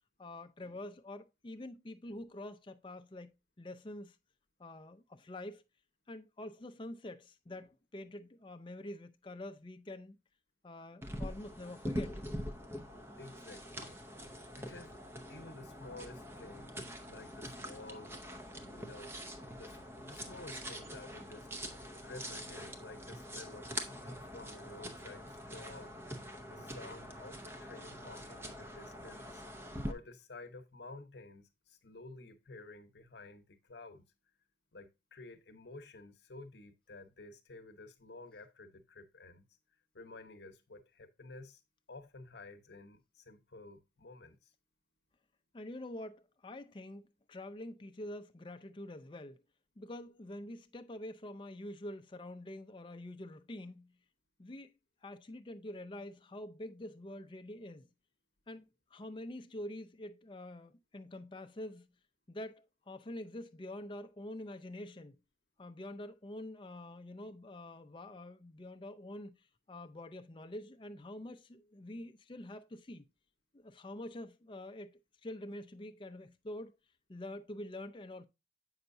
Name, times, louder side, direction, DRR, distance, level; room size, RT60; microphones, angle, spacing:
voice 1, 0.2-3.3 3.6-4.2 4.6-5.6 6.1-10.2 10.6-12.2 45.5-49.4 49.8-54.0 54.4-54.7 55.0-57.9 58.5-61.9 62.3-65.2 65.6-69.4 69.7-73.1 73.5-76.8 77.1-78.3, left 1 dB, 25° left, 0.5 m, -46 dB
sound 1, 11.0-29.9, equal, 15° right, 0.6 m, -44 dB
voice 2, 13.2-14.0 14.5-15.0 15.3-18.2 18.5-19.2 19.6-25.9 26.5-29.4 29.8-34.0 34.7-39.4 39.9-41.6 41.9-44.5, left 2 dB, 70° left, 0.9 m, -52 dB
7.8 x 5.8 x 2.6 m
head